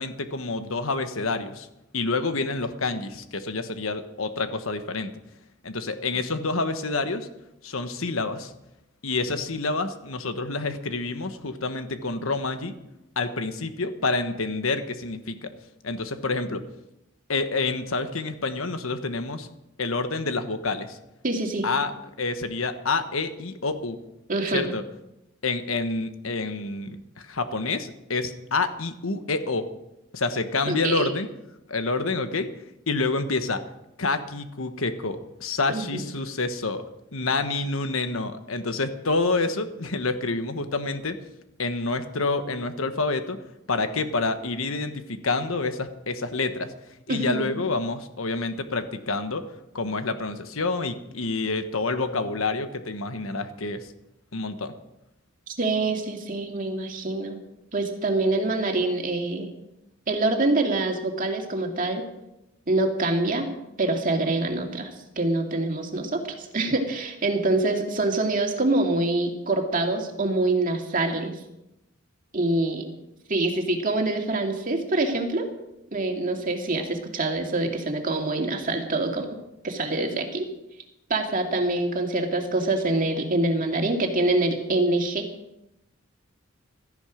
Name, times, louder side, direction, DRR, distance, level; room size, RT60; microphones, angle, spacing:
voice 1, 0.0-1.7 1.9-5.1 5.6-7.3 7.6-8.5 9.0-12.7 13.2-15.5 15.8-16.6 17.3-19.5 19.8-21.0 21.6-21.9 22.2-24.0 24.5-24.8 25.4-29.7 30.1-31.3 31.7-32.5 32.9-33.6 34.0-36.8 37.1-41.2 41.6-43.4 43.7-46.7 47.1-49.4 49.7-53.9 54.3-54.7, left 3 dB, 85° left, 9 dB, 1.3 m, -28 dB
voice 2, 21.2-21.7 24.3-24.7 30.7-31.1 35.7-36.0 47.1-47.6 55.5-57.4 57.7-59.5 60.1-62.0 62.7-63.5 63.8-71.3 72.3-72.9 73.3-75.5 75.9-79.3 79.6-80.5 81.1-85.3, right 2 dB, 40° right, 3 dB, 2.3 m, -25 dB
16.5 x 13.5 x 5.1 m, 0.89 s
head